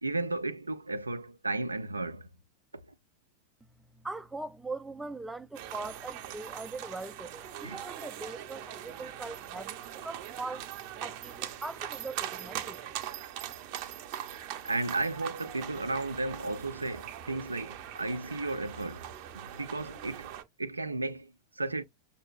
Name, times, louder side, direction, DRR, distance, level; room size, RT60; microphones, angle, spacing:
voice 1, 0.0-2.3 7.6-7.8 14.6-19.1 19.3-20.3 20.6-21.8, right 2 dB, 80° right, 0.4 m, -34 dB
voice 2, 3.9-9.8 10.0-10.7 11.0-13.0, right 3 dB, 10° right, 0.4 m, -41 dB
sound 1, 5.5-20.4, right 11 dB, 45° right, 0.7 m, -41 dB
6.4 x 2.7 x 2.4 m
figure-of-eight pair, 90°, 0 cm